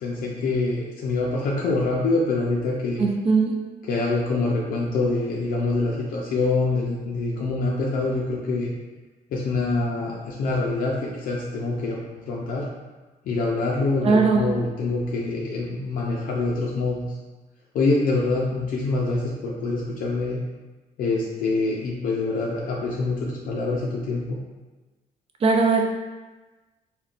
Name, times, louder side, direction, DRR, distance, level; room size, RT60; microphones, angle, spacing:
voice 1, 0.0-3.1 3.9-8.7 9.3-12.0 12.3-12.7 13.2-17.2 17.7-20.4 21.0-24.4, left 3 dB, 65° left, -3 dB, 0.4 m, -25 dB
voice 2, 3.0-3.6 14.0-14.5 25.4-25.8, right 4 dB, 40° right, 2 dB, 0.4 m, -19 dB
3.6 x 2.2 x 2.4 m, 1.2 s
cardioid pair, 140°, 15 cm